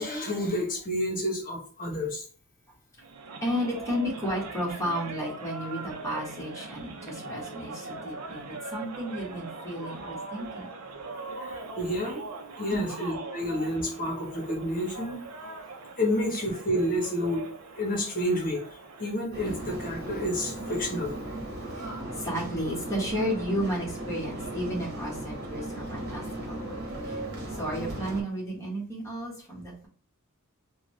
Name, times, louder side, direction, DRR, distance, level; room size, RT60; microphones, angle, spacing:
voice 1, 0.0-2.2 11.4-12.2 12.6-15.2 16.0-17.5 17.7-18.6 19.0-21.2, left 1 dB, 40° left, -2 dB, 1.1 m, -29 dB
sound 1, 3.0-19.2, right 3 dB, 85° right, 0.6 m, -41 dB
voice 2, 3.4-10.7 12.7-12.9 21.7-21.8 22.1-27.2 27.5-29.9, equal, 15° left, -6 dB, 1.5 m, -33 dB
sound 2, 19.3-28.2, right 1 dB, 50° right, 1.1 m, -37 dB
3.6 x 2.3 x 3.2 m, 0.43 s
head